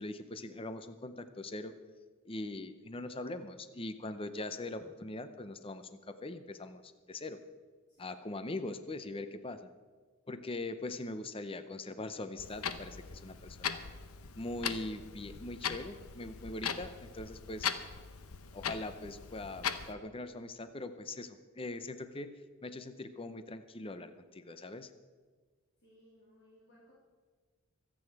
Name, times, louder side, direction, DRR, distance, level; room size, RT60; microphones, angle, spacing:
voice 1, 0.0-1.7 2.3-7.4 8.0-9.7 10.3-13.8 14.4-17.7 18.5-22.4 22.6-24.9, left 2 dB, 25° left, 11 dB, 0.7 m, -42 dB
voice 2, 7.9-8.3 25.8-26.9, equal, 50° left, -6 dB, 3.2 m, -63 dB
Clock, 12.4-19.9, left 7 dB, 75° left, 0.9 m, -40 dB
24.0 x 8.6 x 4.7 m, 1.4 s
head